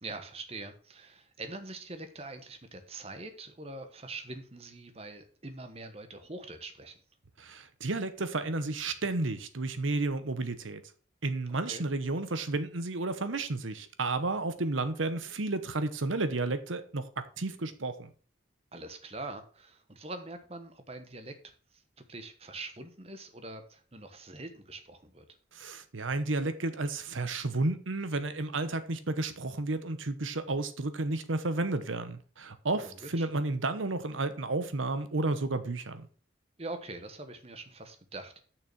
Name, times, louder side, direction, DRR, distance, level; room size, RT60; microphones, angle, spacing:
voice 1, 0.0-6.9 11.6-11.8 18.7-21.3 21.7-21.8 22.1-25.2 32.8-33.3 36.6-38.4, right 2 dB, 30° right, 1.1 m, -43 dB
voice 2, 7.4-10.8 11.2-18.1 25.5-36.1, right 2 dB, 85° right, 1.0 m, -32 dB
6.7 x 6.1 x 6.1 m
head